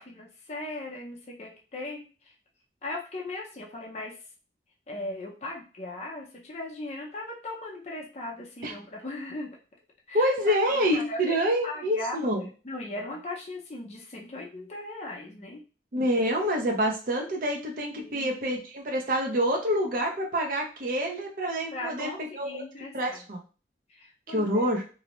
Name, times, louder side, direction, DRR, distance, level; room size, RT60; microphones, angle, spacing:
voice 1, 0.0-2.0 2.8-4.1 4.9-9.5 10.1-11.4 11.6-12.3 12.6-15.6 17.9-18.4 21.7-23.2 23.9-24.7, left 2 dB, 35° left, -2 dB, 0.5 m, -38 dB
voice 2, 10.1-12.5 15.9-22.6 22.9-23.4 24.3-24.8, equal, 50° right, 1 dB, 0.5 m, -27 dB
2.6 x 2.1 x 2.9 m, 0.35 s
head